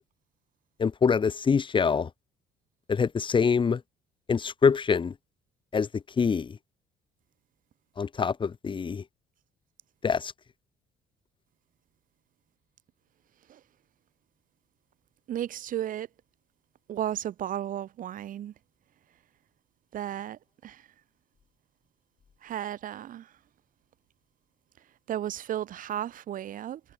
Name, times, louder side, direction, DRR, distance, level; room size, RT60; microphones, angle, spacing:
voice 1, 0.8-2.1 2.9-3.8 4.3-5.1 5.7-6.6 8.0-9.0 10.0-10.3, left 6 dB, 30° left, 1.2 m, -25 dB
voice 2, 15.3-16.1 16.9-18.5 19.9-20.8 22.4-23.3 25.1-26.8, right 11 dB, 55° right, 0.9 m, -34 dB
cardioid pair, 110°, 17 cm